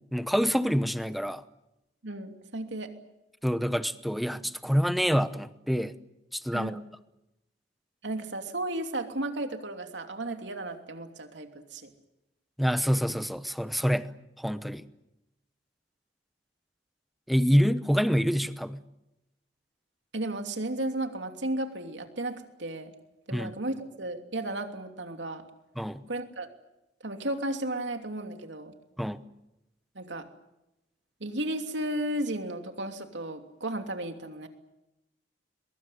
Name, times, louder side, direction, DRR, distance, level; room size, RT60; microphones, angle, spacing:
voice 1, 0.1-1.4 3.4-5.9 6.3-6.8 12.6-14.1 14.4-14.8 17.3-18.8 23.3-23.5 25.8-26.0 29.0-29.2, equal, ahead, 12 dB, 0.9 m, -26 dB
voice 2, 2.0-2.9 6.5-6.9 8.0-11.9 20.1-22.9 23.3-25.4 26.1-26.5 27.0-28.7 29.9-30.3 31.2-34.5, right 1 dB, 80° right, 5 dB, 3.0 m, -34 dB
22.5 x 22.5 x 9.3 m, 0.91 s
head